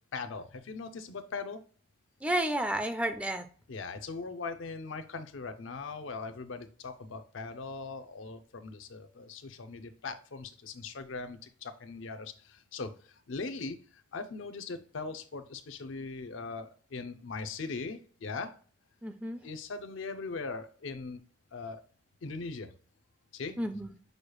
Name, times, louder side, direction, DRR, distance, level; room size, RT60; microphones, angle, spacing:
voice 1, 0.1-1.6 3.7-18.6 19.4-21.2 21.5-21.8 22.2-22.7 23.3-23.6, left 4 dB, 75° left, 0.5 m, -40 dB
voice 2, 2.2-3.5 19.0-19.4 23.6-23.9, right 1 dB, 5° right, 0.3 m, -31 dB
6.4 x 2.3 x 3.0 m
head